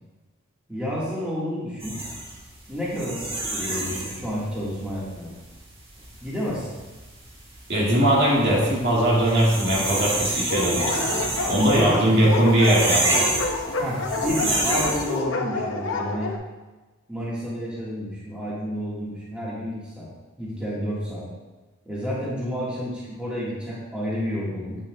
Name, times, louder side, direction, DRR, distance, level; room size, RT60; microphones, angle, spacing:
voice 1, 0.7-2.0 2.7-5.3 6.2-6.7 11.4-12.3 13.8-16.3 17.1-20.1 20.4-21.3 21.9-24.8, equal, 5° right, -8 dB, 1.8 m, -30 dB
sound 1, 1.8-15.2, right 1 dB, 30° right, 1.5 m, -29 dB
voice 2, 7.7-11.1 11.5-13.3, right 1 dB, 55° right, -6 dB, 2.1 m, -20 dB
Dog, 10.5-16.4, left 3 dB, 75° left, 0.7 m, -28 dB
8.6 x 7.0 x 2.4 m, 1.2 s
head